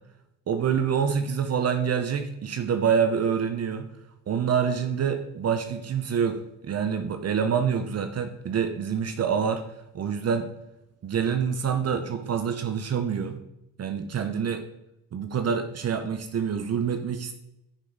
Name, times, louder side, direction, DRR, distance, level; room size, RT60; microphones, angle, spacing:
voice 1, 0.5-3.9 4.3-9.6 9.9-10.5 11.0-13.4 13.8-14.7 15.1-17.3, right 7 dB, 55° right, 8 dB, 0.9 m, -26 dB
10.5 x 5.3 x 4.0 m, 0.86 s
cardioid pair, 95°, 31 cm